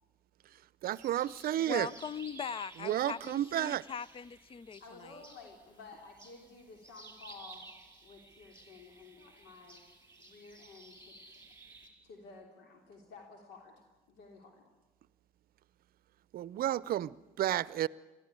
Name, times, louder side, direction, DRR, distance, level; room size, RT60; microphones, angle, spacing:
voice 1, 0.8-1.9 2.8-3.8 16.3-17.9, right 12 dB, 60° right, 0.6 m, -32 dB
sound 1, 0.9-11.9, right 3 dB, 15° right, 4.9 m, -55 dB
voice 2, 1.6-5.1, left 6 dB, 30° left, 0.6 m, -41 dB
voice 3, 4.8-7.7 8.0-9.8 10.2-11.4 12.0-13.7 14.1-14.6, left 4 dB, 80° left, 3.2 m, -53 dB
22.0 x 14.5 x 9.7 m
supercardioid pair, 80°, 17 cm